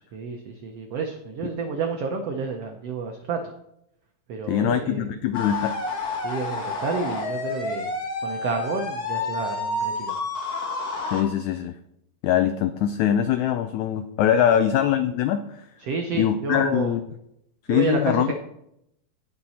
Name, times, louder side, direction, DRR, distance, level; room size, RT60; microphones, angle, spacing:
voice 1, 0.1-3.5 4.3-5.1 6.2-7.9 8.2-10.2 14.4-14.6 15.8-16.9 17.7-18.3, right 4 dB, 85° right, 4 dB, 1.4 m, -30 dB
voice 2, 4.5-5.8 11.1-11.8 12.2-15.6 16.1-17.0 17.7-18.3, left 10 dB, 85° left, 9 dB, 1.6 m, -22 dB
sound 1, 5.3-11.2, left 3 dB, 50° left, 1.2 m, -29 dB
17.5 x 6.0 x 4.2 m, 0.80 s
omnidirectional pair, 4.0 m